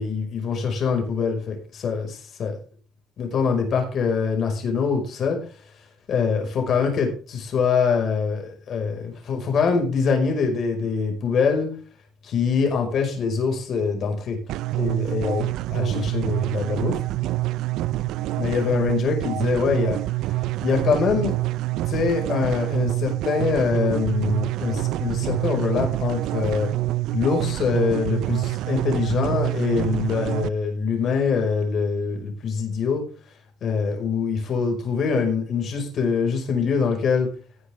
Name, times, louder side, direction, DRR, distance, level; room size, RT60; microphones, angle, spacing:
voice 1, 0.0-2.5 3.2-5.4 6.1-11.7 12.2-14.4 14.8-15.4 15.7-17.0 18.4-20.0 20.6-21.3 21.9-26.7 27.1-33.0 33.6-37.3, left 5 dB, 55° left, 3 dB, 5.4 m, -24 dB
sound 1, 14.5-30.5, right 17 dB, 75° right, 0.5 m, -26 dB
18.5 x 8.2 x 3.6 m, 0.38 s
cardioid pair, 120°, 0 cm